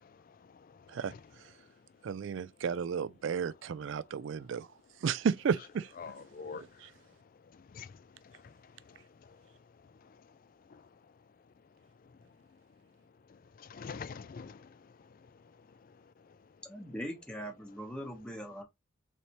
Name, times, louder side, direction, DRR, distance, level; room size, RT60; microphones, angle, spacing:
voice 1, 0.1-1.2 6.0-6.8 7.5-9.4 10.0-10.2 10.7-10.9 13.3-15.3 15.7-15.9, left 5 dB, 40° left, 0.3 m, -48 dB
voice 2, 2.0-4.7 5.0-5.9 6.4-6.9, right 6 dB, 60° right, 0.3 m, -33 dB
voice 3, 16.6-18.6, equal, 5° left, 0.9 m, -41 dB
4.1 x 3.3 x 2.8 m
head